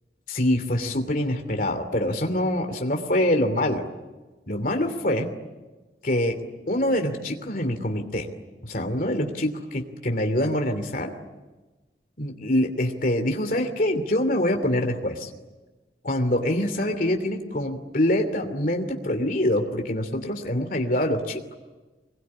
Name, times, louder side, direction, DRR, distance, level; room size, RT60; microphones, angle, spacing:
voice 1, 0.3-3.8 4.5-5.3 6.0-6.4 6.7-8.3 8.6-11.1 12.2-15.3 16.0-21.4, left 1 dB, 50° left, 5 dB, 2.9 m, -25 dB
25.5 x 22.0 x 9.9 m, 1.2 s
head